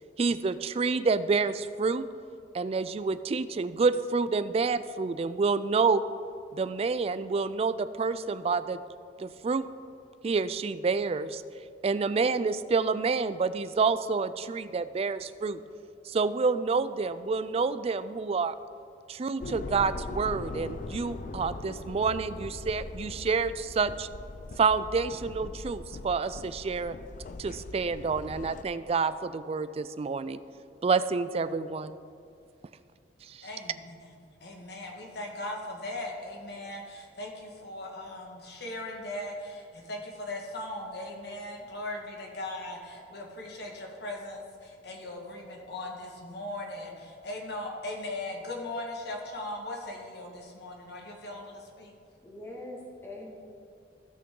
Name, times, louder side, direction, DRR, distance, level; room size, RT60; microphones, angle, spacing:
voice 1, 0.2-2.1 2.5-6.0 6.5-8.8 9.2-9.6 10.2-11.4 11.8-15.6 16.1-18.6 19.1-24.1 24.6-27.0 27.4-30.4 30.8-32.0 33.3-33.5, right 4 dB, 35° right, 13 dB, 0.3 m, -28 dB
sound 1, 19.4-28.6, left 3 dB, 45° left, 0.4 m, -41 dB
voice 2, 33.4-34.1 34.4-51.9, left 1 dB, 65° left, 0 dB, 1.7 m, -39 dB
voice 3, 52.2-53.4, left 1 dB, 15° left, -3 dB, 1.9 m, -42 dB
16.0 x 6.0 x 3.8 m, 2.4 s
head